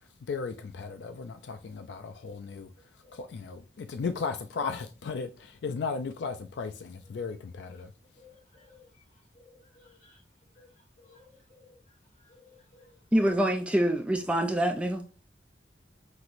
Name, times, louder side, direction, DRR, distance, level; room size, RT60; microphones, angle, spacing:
voice 1, 0.3-2.7 3.1-7.9, left 5 dB, 65° left, 0.4 m, -35 dB
voice 2, 8.2-9.0 9.3-10.2 10.5-10.7 11.0-11.8 12.2-13.0, left 4 dB, 40° left, 1.2 m, -58 dB
voice 3, 13.1-15.0, right 1 dB, 5° right, 0.3 m, -25 dB
5.9 x 2.9 x 2.5 m
head